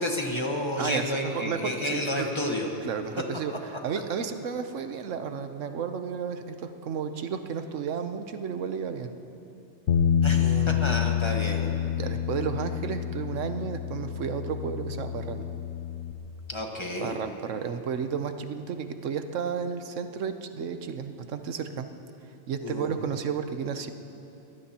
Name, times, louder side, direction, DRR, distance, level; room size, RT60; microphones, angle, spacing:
voice 1, 0.0-2.7 10.2-11.7 16.5-17.2 22.6-23.0, left 1 dB, 25° left, 1 dB, 1.3 m, -30 dB
voice 2, 0.8-2.3 2.8-9.1 10.4-10.8 11.9-15.4 17.0-21.9 22.5-23.9, right 7 dB, 85° right, 8 dB, 1.1 m, -32 dB
Bass guitar, 9.9-16.1, left 9 dB, 80° left, 1.0 m, -28 dB
23.0 x 18.0 x 2.9 m, 2.9 s
omnidirectional pair, 1.2 m